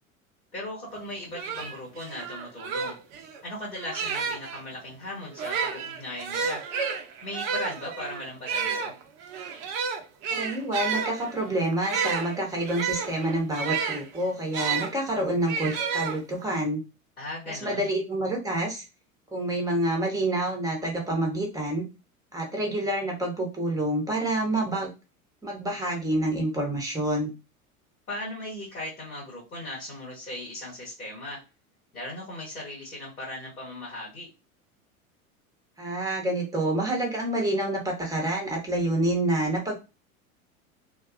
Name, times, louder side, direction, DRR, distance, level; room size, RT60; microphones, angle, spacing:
voice 1, 0.5-2.9 3.4-6.6 7.2-8.9 17.2-17.9 28.1-31.4 31.9-34.3, left 1 dB, 85° left, -6 dB, 1.3 m, -38 dB
sound 1, 1.0-1.1 1.3-4.6 5.3-14.9 15.5-16.6, right 6 dB, 45° right, 0.6 m, -31 dB
voice 2, 10.3-16.8 17.5-18.8 19.3-21.8 22.3-24.9 25.4-27.3 35.8-39.8, right 1 dB, 10° right, 1 dB, 0.9 m, -28 dB
2.6 x 2.2 x 2.5 m, 0.28 s
figure-of-eight pair, 80°, 43 cm